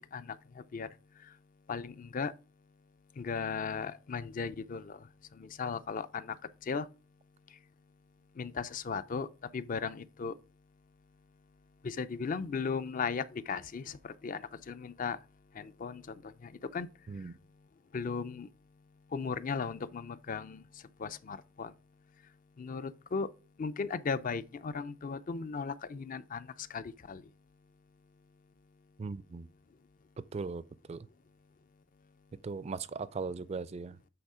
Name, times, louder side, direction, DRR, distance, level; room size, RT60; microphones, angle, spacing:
voice 1, 1.7-2.3 3.2-5.0 5.4-6.4 6.7-6.9 8.4-9.3 9.5-10.3 11.8-15.2 15.6-16.9 17.9-18.5 19.1-20.6 21.0-21.7 22.6-23.3 23.6-27.2, left 5 dB, 40° left, 0.4 m, -36 dB
voice 2, 29.0-29.5 30.3-31.1 32.4-34.0, right 4 dB, 30° right, 0.4 m, -38 dB
7.9 x 3.6 x 4.9 m
head